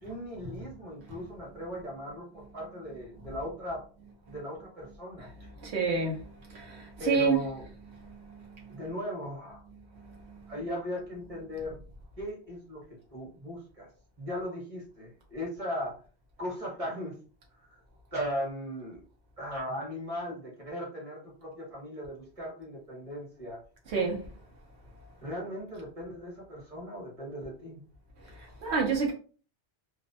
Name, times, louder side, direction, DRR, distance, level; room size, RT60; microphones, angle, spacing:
voice 1, 0.0-3.8 4.3-5.3 7.0-7.6 8.7-9.6 10.5-11.8 12.2-12.8 13.1-13.9 14.2-16.0 16.4-17.2 17.6-17.8 18.1-19.0 19.4-23.6 25.2-27.8, equal, 35° right, 1.2 m, -38 dB
voice 2, 5.6-6.2 6.5-7.4 8.6-8.8 23.9-24.2 28.6-29.1, right 4 dB, 80° right, 0.9 m, -27 dB
2.5 x 2.0 x 2.6 m
omnidirectional pair, 1.1 m